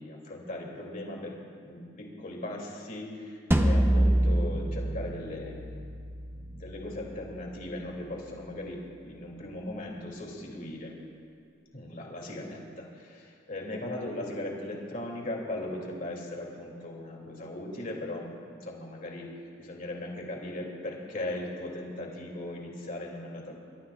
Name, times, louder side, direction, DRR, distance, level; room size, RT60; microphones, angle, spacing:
voice 1, 0.0-1.3 1.6-5.8 6.3-10.9 11.7-23.6, left 1 dB, 45° left, -1 dB, 2.9 m, -38 dB
sound 1, 3.5-8.6, right 1 dB, 10° right, 0.7 m, -28 dB
23.5 x 22.0 x 2.5 m, 2.3 s
head